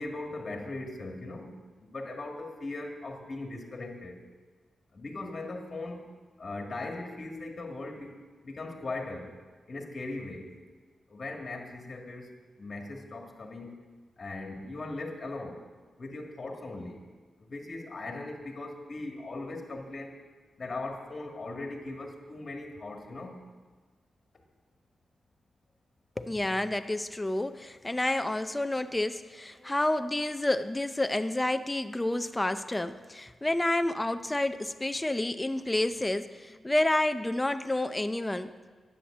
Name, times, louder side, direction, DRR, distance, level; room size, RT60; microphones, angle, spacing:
voice 1, 0.0-1.5 1.8-4.2 4.9-6.1 6.4-9.3 9.7-10.5 11.1-12.3 12.6-13.7 14.2-15.6 16.0-17.0 17.5-20.1 20.6-23.4, left 2 dB, 35° left, 2 dB, 1.8 m, -39 dB
voice 2, 26.2-38.5, left 1 dB, 10° left, 10 dB, 0.5 m, -29 dB
10.0 x 9.5 x 7.3 m, 1.4 s
wide cardioid pair, 140°, 0 cm